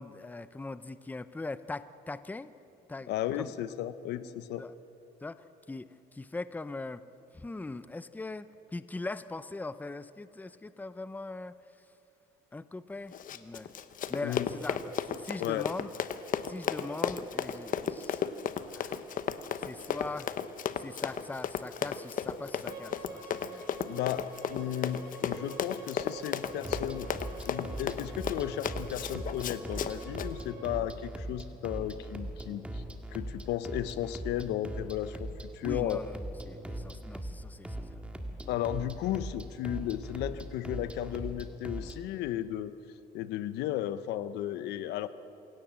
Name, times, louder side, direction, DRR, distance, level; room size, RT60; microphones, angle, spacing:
voice 1, 0.0-2.5 2.9-3.5 4.6-4.7 5.2-7.0 7.3-11.5 12.5-13.7 14.1-15.9 16.5-18.3 18.7-19.0 19.6-20.3 20.8-23.7 35.6-36.2 36.5-38.0, left 3 dB, 10° left, 14 dB, 0.7 m, -41 dB
voice 2, 3.1-4.6 14.2-14.5 15.4-15.7 23.5-23.6 23.9-27.1 27.5-32.9 33.1-35.3 35.5-36.0 38.5-42.7 43.1-45.1, left 12 dB, 85° left, 13 dB, 0.9 m, -34 dB
Run, 13.1-30.3, left 8 dB, 55° left, 1.1 m, -35 dB
Bowed string instrument, 22.6-30.7, right 4 dB, 75° right, 6.0 m, -48 dB
sound 1, 26.5-42.0, right 1 dB, 5° right, 1.9 m, -40 dB
26.5 x 17.5 x 7.6 m, 2.9 s
cardioid pair, 110°, 17 cm